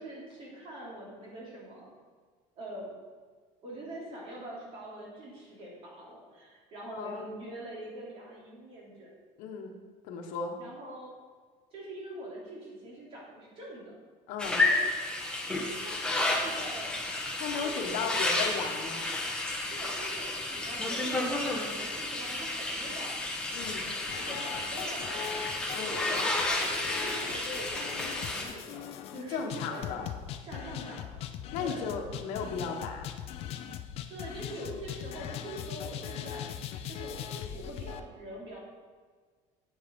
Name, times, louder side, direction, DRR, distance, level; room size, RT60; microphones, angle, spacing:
voice 1, 0.0-1.9 2.5-2.9 3.6-9.1 10.6-11.1 11.7-13.9 14.5-14.8 15.8-17.2 17.6-18.3 19.7-23.4 24.2-26.3 26.7-29.8 30.4-31.2 31.6-31.8 34.1-36.5 36.9-38.6, right 1 dB, 40° right, -4 dB, 3.2 m, -44 dB
voice 2, 6.9-7.2 9.4-9.7 10.0-10.6 14.3-14.6 17.4-19.1 23.5-23.9 25.7-25.9 29.1-30.1 31.5-33.1, left 5 dB, 60° left, 3 dB, 1.2 m, -35 dB
sound 1, 14.4-28.5, left 2 dB, 5° left, 1.1 m, -31 dB
sound 2, 23.6-38.0, left 9 dB, 45° left, 0.5 m, -40 dB
8.5 x 7.5 x 5.3 m, 1.6 s
cardioid pair, 175°, 14 cm